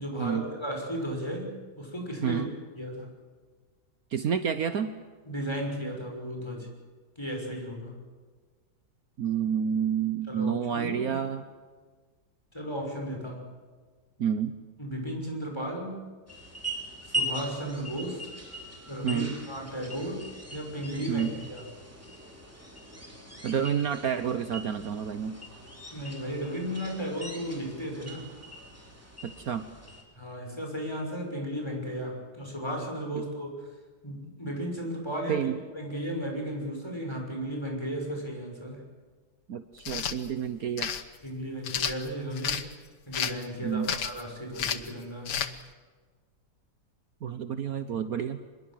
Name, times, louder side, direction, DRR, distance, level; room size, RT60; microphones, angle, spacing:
voice 1, 0.0-2.4 2.8-3.1 5.3-6.7 7.2-8.0 10.3-11.2 12.5-13.5 14.8-16.1 17.1-18.3 18.9-21.7 25.9-28.3 30.1-33.7 34.0-38.8 41.2-42.6 43.1-45.5, equal, 15° left, 1 dB, 6.2 m, -35 dB
voice 2, 4.1-5.0 9.2-11.4 14.2-14.6 19.0-19.3 21.1-21.3 23.4-25.4 29.2-29.7 35.3-35.6 39.5-40.9 43.6-43.9 47.2-48.4, right 8 dB, 60° right, 10 dB, 1.4 m, -29 dB
sound 1, 16.3-30.0, right 1 dB, 10° right, 3.8 m, -40 dB
sound 2, 39.8-40.2 40.8-41.0 41.6-42.6 43.1-43.4 43.8-44.2 44.6-44.9 45.3-45.5, left 8 dB, 80° left, 1.8 m, -31 dB
25.0 x 22.0 x 7.6 m, 1.4 s
omnidirectional pair, 1.8 m